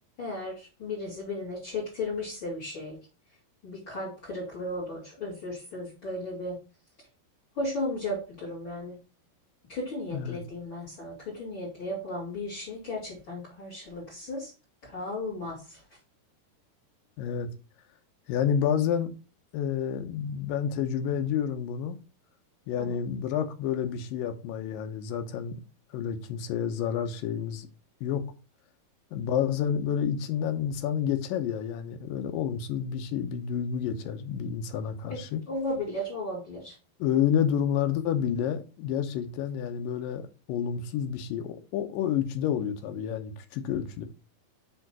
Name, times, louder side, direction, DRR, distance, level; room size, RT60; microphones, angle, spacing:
voice 1, 0.2-3.0 3.6-6.6 7.5-9.0 9.7-14.5 14.8-15.8 22.8-23.0 35.1-35.2 35.5-36.7, left 1 dB, 35° left, 3.0 m, -35 dB
voice 2, 17.2-17.5 18.3-19.1 19.5-22.0 22.7-25.5 25.9-27.7 28.0-28.2 29.1-35.4 37.0-44.1, left 8 dB, 75° left, 2.4 m, -29 dB
6.9 x 3.8 x 6.0 m
omnidirectional pair, 4.3 m